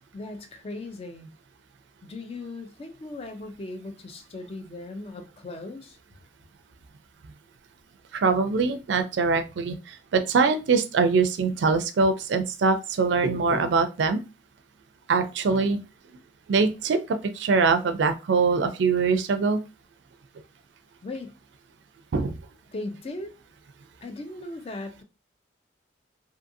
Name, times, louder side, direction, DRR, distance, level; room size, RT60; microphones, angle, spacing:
voice 1, 0.1-1.3 2.0-6.0 21.0-21.3 22.7-23.3 24.0-25.0, left 2 dB, 30° left, 0.4 m, -38 dB
voice 2, 8.1-14.2 15.1-15.8 16.5-19.6 22.1-22.3, right 4 dB, 75° right, 0.4 m, -23 dB
2.6 x 2.5 x 2.6 m
head